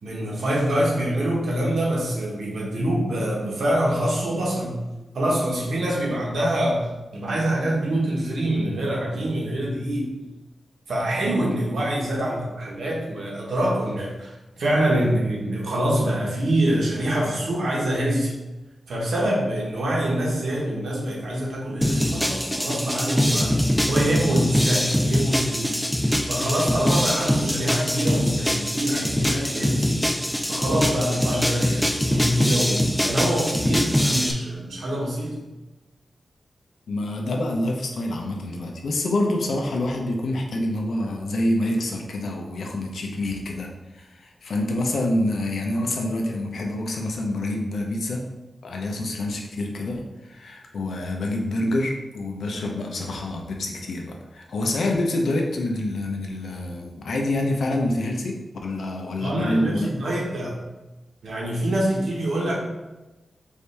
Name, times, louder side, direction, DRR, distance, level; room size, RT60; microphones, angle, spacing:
voice 1, 0.0-4.8 5.1-10.1 10.9-18.3 18.9-23.6 23.9-25.8 26.3-30.1 30.5-35.4 59.2-60.6 61.2-62.6, right 1 dB, 85° right, -3 dB, 1.2 m, -25 dB
sound 1, 21.8-34.3, equal, ahead, 0.3 m, -23 dB
voice 2, 36.9-48.2 48.6-59.9, left 1 dB, 70° left, 1 dB, 0.7 m, -27 dB
4.9 x 2.7 x 3.3 m, 1.1 s
wide cardioid pair, 175°, 0 cm